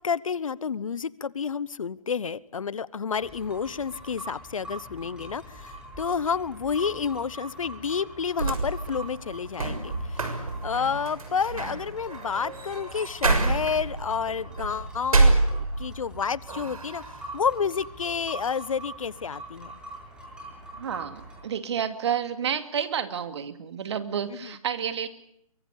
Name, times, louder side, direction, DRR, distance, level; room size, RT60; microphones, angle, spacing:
voice 1, 0.0-10.3 10.6-17.0 17.3-19.7, left 6 dB, 65° left, 21 dB, 1.0 m, -30 dB
sound 1, 3.1-21.4, equal, 5° right, 7.0 m, -44 dB
sound 2, 8.1-16.1 16.5-17.3, right 3 dB, 75° right, 6.5 m, -27 dB
sound 3, 13.3-18.3, right 4 dB, 25° right, 6.1 m, -48 dB
voice 2, 20.7-25.1, right 8 dB, 50° right, 10 dB, 2.5 m, -30 dB
23.5 x 23.5 x 8.2 m, 0.71 s
figure-of-eight pair, 140°, 19 cm